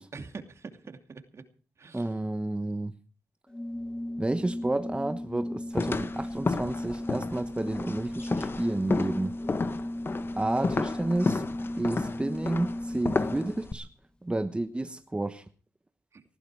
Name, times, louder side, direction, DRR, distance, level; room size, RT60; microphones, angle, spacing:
voice 1, 0.1-1.4 1.8-2.1 10.5-10.8 16.1-16.2, right 4 dB, 55° right, 2.6 m, -44 dB
voice 2, 1.9-2.9 4.2-9.3 10.4-11.4 11.8-13.9 14.2-15.4, right 2 dB, 20° right, 1.2 m, -31 dB
Organ, 3.5-13.8, left 1 dB, 15° left, 1.7 m, -36 dB
sound 1, 5.7-13.7, left 3 dB, 40° left, 1.4 m, -32 dB
19.5 x 14.5 x 4.8 m
cardioid pair, 65°, 6 cm